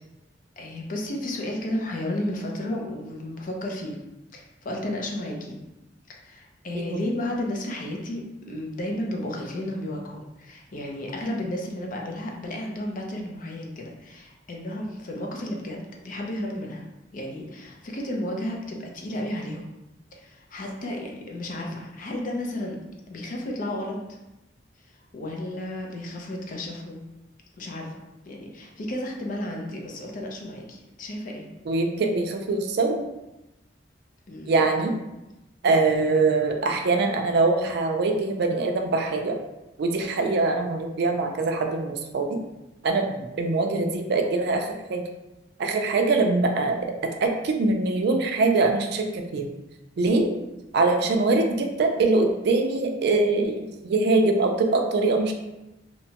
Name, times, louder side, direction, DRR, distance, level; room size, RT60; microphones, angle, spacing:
voice 1, 0.6-4.0 4.3-5.6 6.1-16.9 17.1-19.7 20.1-22.8 23.1-24.0 24.8-27.0 27.6-27.9 28.2-31.5 34.3-34.6, left 1 dB, 50° left, 0 dB, 0.5 m, -33 dB
voice 2, 31.7-33.0 34.5-34.9 35.6-39.4 39.8-42.4 42.8-45.0 45.6-46.8 47.0-49.5 50.0-50.3 50.7-55.3, right 3 dB, 60° right, 4 dB, 0.4 m, -23 dB
2.8 x 2.2 x 2.8 m, 0.96 s
head